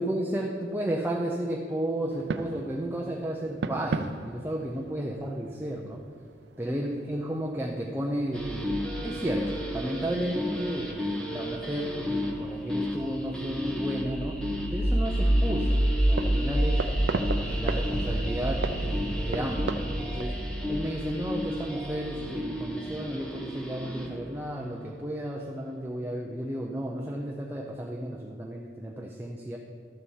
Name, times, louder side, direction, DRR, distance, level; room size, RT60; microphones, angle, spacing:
voice 1, 0.0-6.0 6.6-14.4 14.7-16.9 17.4-20.4 20.7-29.6, right 1 dB, 10° right, -1 dB, 0.5 m, -33 dB
sound 1, 2.1-20.2, right 3 dB, 75° right, 0.5 m, -39 dB
sound 2, 8.3-24.2, equal, 5° left, 0.9 m, -29 dB
12.5 x 4.2 x 7.2 m, 2.1 s
head